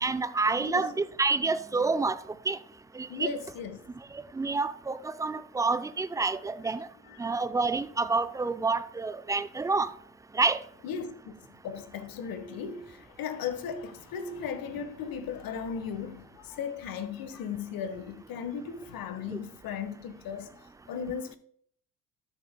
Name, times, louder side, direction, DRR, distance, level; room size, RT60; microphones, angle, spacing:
voice 1, 0.0-2.2 2.5-2.6 3.0-3.3 4.3-6.9 7.2-9.9 10.3-10.6 19.3-19.4, right 3 dB, 10° right, 0.3 m, -28 dB
voice 2, 0.6-0.9 3.1-3.9 7.1-7.3 10.8-20.6 20.9-21.4, left 6 dB, 50° left, 1.3 m, -37 dB
12.5 x 7.2 x 2.2 m
hypercardioid pair, 65°, 44 cm